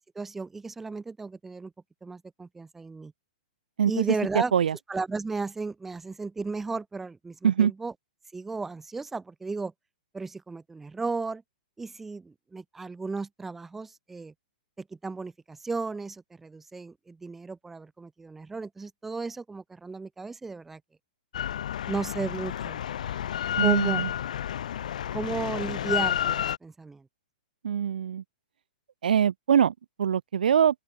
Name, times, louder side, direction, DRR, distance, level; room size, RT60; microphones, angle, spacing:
voice 1, 0.0-1.7 2.0-3.1 3.9-4.5 4.9-7.9 8.3-9.7 10.1-11.4 11.8-14.3 14.8-20.8 21.9-22.8 23.6-24.0 25.1-27.1, right 3 dB, 5° right, 3.9 m, -34 dB
Drill, 21.3-26.6, left 10 dB, 55° left, 1.8 m, -30 dB
voice 2, 23.6-24.1 27.6-28.2 29.0-30.8, right 8 dB, 75° right, 0.9 m, -23 dB
open air
hypercardioid pair, 180°, 5 cm